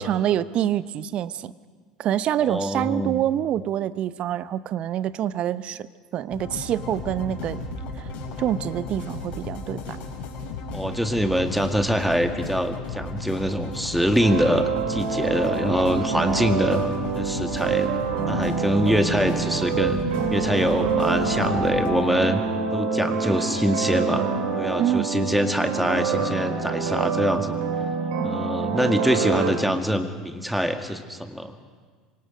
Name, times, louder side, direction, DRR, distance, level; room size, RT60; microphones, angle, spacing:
voice 1, 0.0-1.5 2.0-5.9 6.1-7.6 8.0-8.1 8.4-10.0 24.8-25.1, right 11 dB, 45° right, 16 dB, 0.8 m, -26 dB
voice 2, 2.4-3.2 10.7-16.8 17.1-17.9 18.3-20.0 20.3-22.4 22.7-24.3 24.6-27.6 28.2-31.5, equal, ahead, 6 dB, 2.0 m, -24 dB
sound 1, 6.3-21.9, left 3 dB, 50° left, 5.6 m, -35 dB
sound 2, 14.2-29.5, right 5 dB, 65° right, 3.5 m, -26 dB
27.5 x 24.5 x 5.2 m, 1.5 s
figure-of-eight pair, 70°, 3 cm